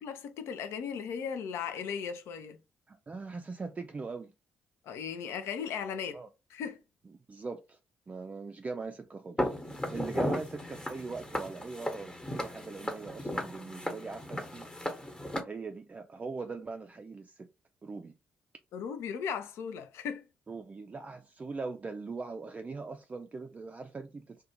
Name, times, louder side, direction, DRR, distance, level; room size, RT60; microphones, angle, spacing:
voice 1, 0.0-2.6 4.8-6.2 6.5-6.8 18.7-20.2, left 7 dB, 70° left, 0.4 m, -37 dB
voice 2, 2.9-4.3 6.1-6.3 7.3-7.8 8.1-14.7 15.4-17.5 17.8-18.1 20.5-24.4, right 4 dB, 30° right, 0.3 m, -41 dB
Walk footsteps, 9.4-15.4, left 1 dB, 20° left, 0.9 m, -35 dB
2.4 x 2.2 x 2.8 m
hypercardioid pair, 45°, 5 cm